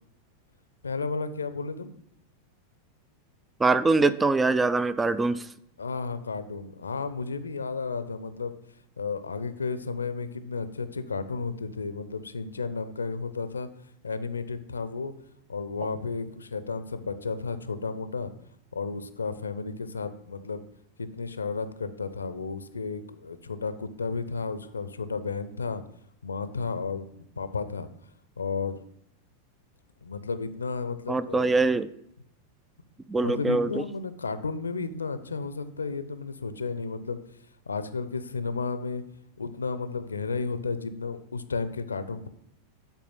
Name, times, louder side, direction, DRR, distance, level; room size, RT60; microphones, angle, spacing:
voice 1, 0.8-1.9 5.8-8.5 9.0-13.7 14.0-15.1 15.5-18.3 18.7-20.7 21.0-25.8 26.2-27.9 28.4-28.8 30.0-31.5 33.2-37.2 37.7-39.0 39.4-42.3, left 4 dB, 75° left, 12 dB, 0.6 m, -33 dB
voice 2, 3.6-5.5 31.1-31.9 33.1-33.8, right 3 dB, 10° right, 16 dB, 0.4 m, -23 dB
8.1 x 4.4 x 7.2 m, 0.74 s
figure-of-eight pair, 90°, 0 cm